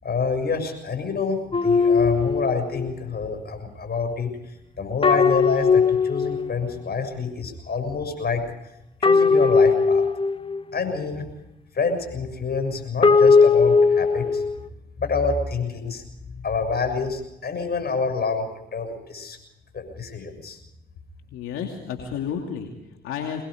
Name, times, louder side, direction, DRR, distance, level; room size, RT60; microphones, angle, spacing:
voice 1, 0.0-8.4 9.0-10.0 10.7-11.3 11.7-14.4 15.0-16.0 16.3-19.4 19.7-20.6, left 4 dB, 50° left, 7 dB, 6.8 m, -27 dB
sound 1, 1.5-2.9 5.0-6.8 9.0-10.8 13.0-14.6, left 4 dB, 25° left, 0.9 m, -18 dB
voice 2, 21.3-23.4, left 7 dB, 85° left, 2 dB, 2.6 m, -31 dB
25.0 x 20.5 x 5.1 m, 0.87 s
supercardioid pair, 60°, 21 cm